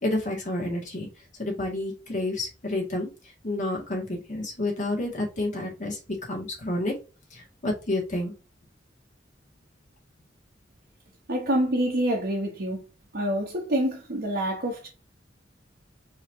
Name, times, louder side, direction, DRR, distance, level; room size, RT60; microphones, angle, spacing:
voice 1, 0.0-1.1 1.4-3.1 3.4-6.9 7.3-8.3, left 2 dB, 45° left, 2.0 m, -29 dB
voice 2, 11.3-12.8 13.1-14.9, right 1 dB, 55° right, 1.0 m, -26 dB
4.6 x 3.1 x 3.4 m
head